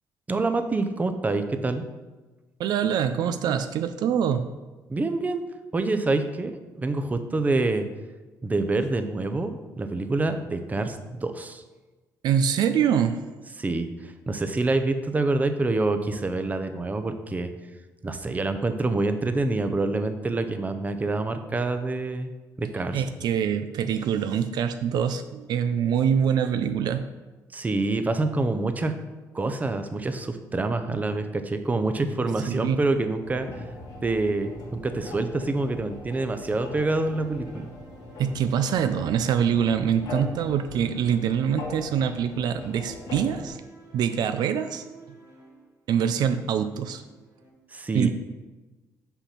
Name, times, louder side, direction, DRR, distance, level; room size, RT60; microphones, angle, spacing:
voice 1, 0.3-1.8 4.9-5.4 5.7-7.9 8.4-11.6 13.6-17.5 18.0-22.3 22.6-23.0 27.5-28.9 29.3-33.6 34.0-37.7 47.7-48.1, right 2 dB, 20° right, 8 dB, 0.6 m, -26 dB
voice 2, 2.6-4.5 12.2-13.2 22.6-27.0 32.5-32.8 38.2-43.6 43.9-44.8 45.9-47.0 47.9-48.1, right 8 dB, 75° right, 9 dB, 0.4 m, -24 dB
sound 1, 33.2-43.5, left 2 dB, 85° left, 1.5 m, -41 dB
sound 2, 33.6-47.5, right 1 dB, 50° right, 1.6 m, -52 dB
5.7 x 4.3 x 5.7 m, 1.2 s
cardioid pair, 95°, 7 cm